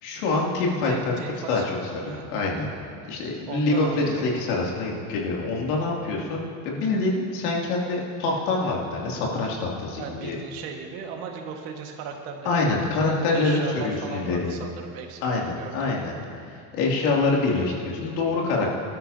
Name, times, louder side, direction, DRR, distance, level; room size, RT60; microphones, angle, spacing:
voice 1, 0.0-1.1 1.5-2.7 3.1-10.4 12.4-14.6 15.2-16.1 16.5-18.7, left 3 dB, 80° left, -3 dB, 2.8 m, -25 dB
voice 2, 0.8-2.3 3.5-4.3 10.0-16.0, right 6 dB, 70° right, 2 dB, 1.8 m, -37 dB
19.0 x 12.5 x 2.8 m, 2.3 s
supercardioid pair, 145°, 45 cm